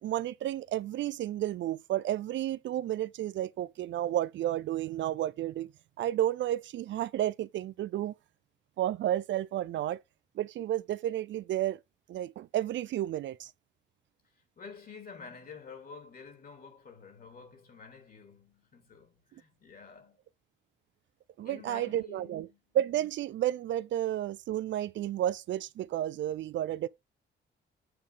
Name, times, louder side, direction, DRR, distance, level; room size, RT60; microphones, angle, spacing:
voice 1, 0.0-5.7 6.0-8.1 8.8-10.0 10.4-11.8 12.1-13.5 21.4-22.5 22.7-26.9, right 12 dB, 70° right, 0.6 m, -31 dB
voice 2, 14.4-20.2 21.4-22.6, left 5 dB, 50° left, 3.5 m, -49 dB
8.7 x 5.1 x 4.0 m
cardioid pair, 90°, 20 cm